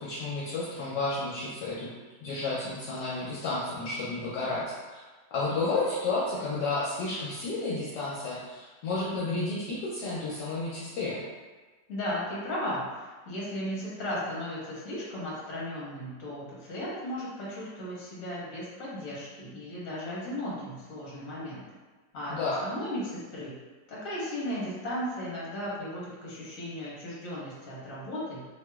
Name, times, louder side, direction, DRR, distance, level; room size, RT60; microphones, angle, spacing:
voice 1, 0.0-1.9 2.2-4.6 4.9-5.0 5.3-11.2 22.3-22.6, left 3 dB, 75° left, -7 dB, 1.2 m, -31 dB
voice 2, 11.9-21.6 22.1-23.5 23.9-28.4, left 1 dB, 55° left, -6 dB, 1.2 m, -36 dB
3.0 x 2.8 x 2.3 m, 1.3 s
omnidirectional pair, 2.0 m